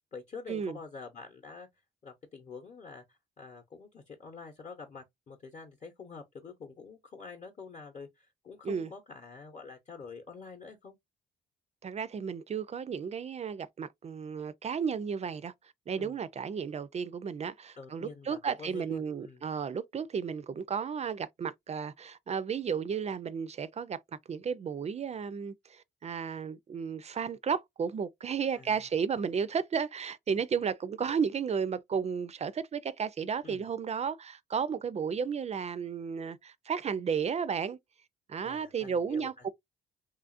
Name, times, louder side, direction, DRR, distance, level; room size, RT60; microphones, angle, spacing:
voice 1, 0.1-1.7 2.0-10.9 16.0-16.2 17.8-19.5 28.5-28.8 33.4-33.7 38.4-39.5, left 4 dB, 35° left, 0.8 m, -47 dB
voice 2, 11.8-15.5 15.9-24.0 24.3-37.8 38.3-39.5, right 6 dB, 35° right, 0.3 m, -33 dB
2.9 x 2.4 x 2.4 m
cardioid pair, 90°, 20 cm